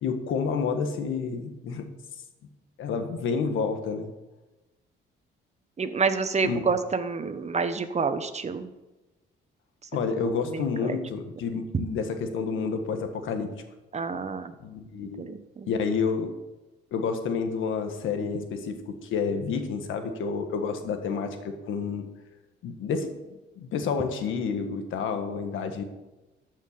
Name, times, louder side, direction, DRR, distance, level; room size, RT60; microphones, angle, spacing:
voice 1, 0.0-1.9 2.8-4.1 6.4-6.6 9.9-13.6 14.6-15.3 15.7-16.4 16.9-22.1 22.6-23.1 23.6-25.8, left 5 dB, 80° left, 6 dB, 1.6 m, -29 dB
voice 2, 5.8-8.7 10.5-11.0 11.5-11.6 13.9-14.5 15.0-15.7, right 5 dB, 35° right, 10 dB, 1.1 m, -28 dB
13.0 x 5.8 x 6.8 m, 1.1 s
cardioid pair, 90°, 20 cm